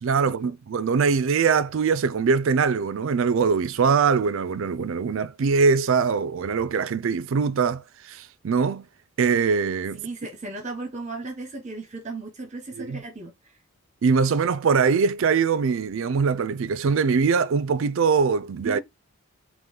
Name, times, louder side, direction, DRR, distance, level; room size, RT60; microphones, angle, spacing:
voice 1, 0.0-8.8 9.2-10.0 12.8-13.0 14.0-18.8, right 5 dB, 65° right, 0.4 m, -22 dB
voice 2, 9.9-13.3 18.6-18.8, right 3 dB, 30° right, 0.9 m, -35 dB
3.8 x 3.0 x 3.5 m
head